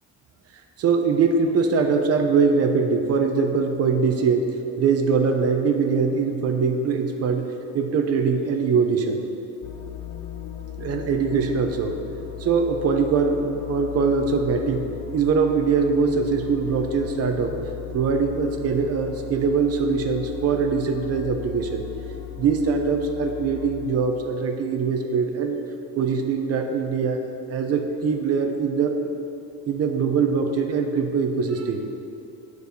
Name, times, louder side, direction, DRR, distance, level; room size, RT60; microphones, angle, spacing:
voice 1, 0.8-4.5 4.8-7.5 7.7-9.2 10.8-11.9 12.4-14.9 15.1-17.5 17.9-21.8 22.4-25.6 25.9-27.2 27.5-29.1 29.7-31.8, right 5 dB, 55° right, 5 dB, 0.8 m, -22 dB
sound 1, 9.6-23.9, left 11 dB, 90° left, 0.8 m, -37 dB
9.4 x 4.8 x 6.8 m, 2.8 s
cardioid pair, 160°, 30 cm